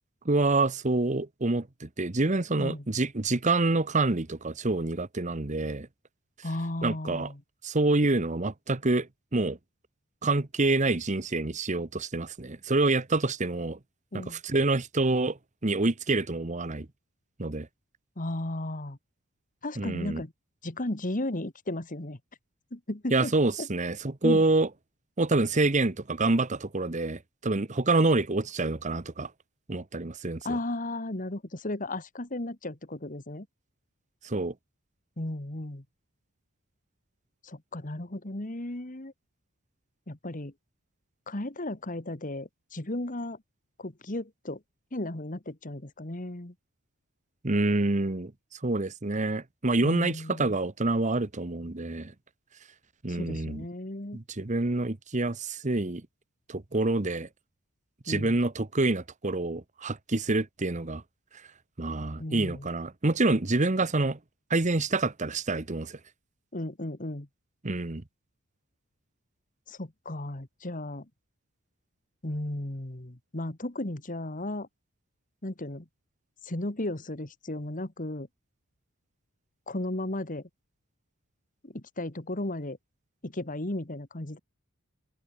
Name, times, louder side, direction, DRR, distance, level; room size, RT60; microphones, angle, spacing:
voice 1, 0.2-5.9 6.8-7.3 7.6-9.6 10.2-13.8 14.1-16.9 17.4-17.7 19.8-20.2 23.1-24.7 25.2-29.3 29.7-30.4 34.2-34.5 47.4-48.3 48.6-52.1 53.0-53.6 54.1-56.1 56.5-57.3 58.1-61.0 61.8-64.2 64.5-66.0 67.6-68.0, right 2 dB, 35° right, 1.1 m, -27 dB
voice 2, 6.4-7.4 14.1-14.4 18.2-19.0 19.6-20.3 20.6-22.2 22.7-23.7 24.2-24.4 30.4-33.5 35.2-35.8 37.4-39.1 40.1-40.5 41.3-43.4 43.8-44.6 44.9-46.5 49.8-50.6 53.1-54.2 58.1-58.4 62.2-62.7 66.5-67.3 69.7-71.1 72.2-74.7 75.4-75.9 76.4-78.3 79.7-80.5 81.6-82.8 83.2-84.4, left 1 dB, 35° left, 1.7 m, -35 dB
open air
head